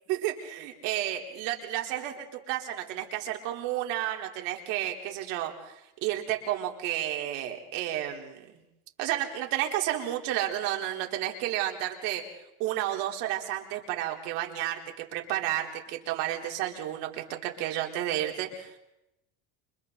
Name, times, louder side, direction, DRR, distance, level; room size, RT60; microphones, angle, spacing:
voice 1, 0.1-5.7 6.0-8.5 9.0-12.2 12.6-18.8, right 13 dB, 65° right, 1 dB, 4.0 m, -31 dB
29.0 x 26.0 x 4.0 m, 0.87 s
cardioid pair, 170°, 33 cm